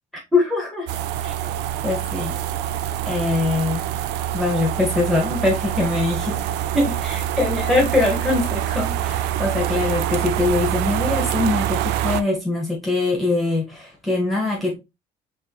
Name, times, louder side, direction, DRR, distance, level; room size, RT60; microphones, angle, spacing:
voice 1, 0.3-0.9 1.2-1.3 1.8-2.3 3.0-3.9 4.3-6.4 6.7-14.8, left 2 dB, ahead, 1.5 m, -22 dB
sound 1, 0.9-12.2, right 11 dB, 85° right, 0.4 m, -25 dB
4.8 x 3.2 x 3.0 m
cardioid pair, 110°, 17 cm